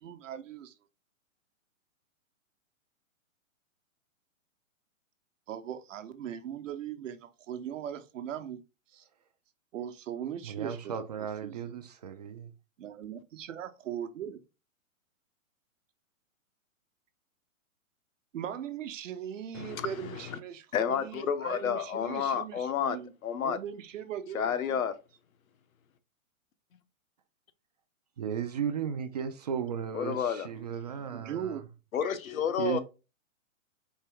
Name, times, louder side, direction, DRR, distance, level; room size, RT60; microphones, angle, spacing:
voice 1, 0.0-0.7 5.5-8.6 8.9-9.1 9.7-10.9 11.4-11.6 12.8-14.4 18.3-23.1 23.4-24.9 31.1-31.6, right 9 dB, 65° right, 0.9 m, -39 dB
voice 2, 10.4-12.5 28.2-31.6 32.6-32.8, right 8 dB, 30° right, 0.4 m, -35 dB
voice 3, 19.5-19.9 20.7-23.6 24.3-24.9 29.9-30.5 31.9-32.8, left 8 dB, 80° left, 0.9 m, -30 dB
4.4 x 3.3 x 3.5 m
hypercardioid pair, 145°, 41 cm